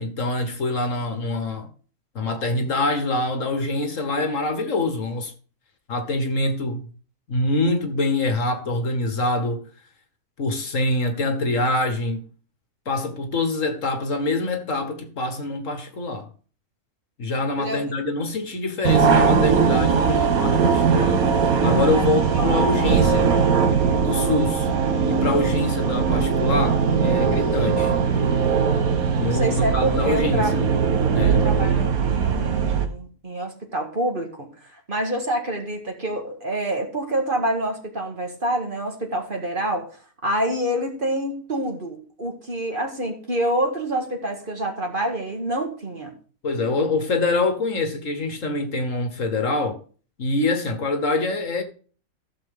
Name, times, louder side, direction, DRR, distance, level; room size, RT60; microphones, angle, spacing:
voice 1, 0.0-1.7 2.1-5.3 5.9-6.9 7.3-9.6 10.4-12.2 12.8-16.3 17.2-21.2 21.6-23.3 24.0-24.7 25.1-27.9 29.2-30.6 31.1-31.4 46.4-49.8 50.2-51.6, left 2 dB, 60° left, 1.7 m, -25 dB
sound 1, 18.8-32.9, right 5 dB, 70° right, 1.5 m, -20 dB
voice 2, 29.3-30.6 31.2-39.9 40.2-46.1, right 1 dB, 35° right, 1.9 m, -27 dB
14.5 x 6.8 x 3.7 m
omnidirectional pair, 1.6 m